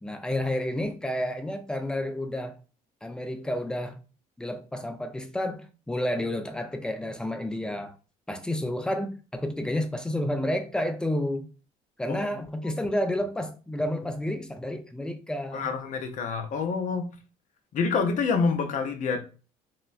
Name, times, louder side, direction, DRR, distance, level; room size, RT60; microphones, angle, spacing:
voice 1, 0.0-2.6 3.0-4.0 4.4-8.0 8.3-11.5 12.0-15.7, left 1 dB, 5° left, 0.5 m, -30 dB
voice 2, 15.5-17.1 17.7-19.2, left 5 dB, 55° left, 0.7 m, -27 dB
2.9 x 2.1 x 2.4 m
supercardioid pair, 85°, 16 cm